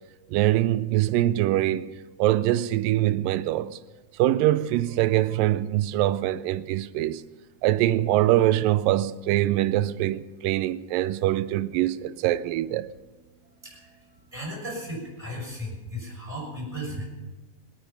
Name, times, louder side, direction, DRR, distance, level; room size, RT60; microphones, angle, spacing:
voice 1, 0.3-1.9 2.2-3.8 4.2-7.2 7.6-12.9, right 14 dB, 80° right, 2.2 m, -23 dB
voice 2, 13.6-17.0, equal, 10° right, 6.2 m, -36 dB
26.0 x 9.0 x 5.8 m
omnidirectional pair, 4.0 m